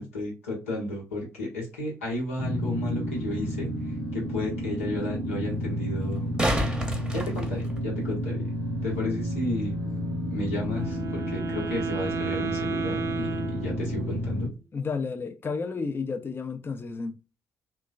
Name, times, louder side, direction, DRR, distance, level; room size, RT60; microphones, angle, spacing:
voice 1, 0.0-6.3 7.1-8.5 8.8-9.8 10.2-14.5, left 1 dB, 85° left, 0.8 m, -33 dB
sound 1, 2.4-14.5, equal, 90° right, 0.5 m, -31 dB
sound 2, 3.2-3.3 6.0-8.2 11.0-11.1, equal, 10° right, 0.8 m, -30 dB
Wind instrument woodwind instrument, 10.6-14.3, right 4 dB, 45° right, 0.4 m, -33 dB
voice 2, 14.7-17.2, left 4 dB, 30° left, 0.4 m, -32 dB
3.0 x 2.1 x 2.3 m
figure-of-eight pair, 40°, 7 cm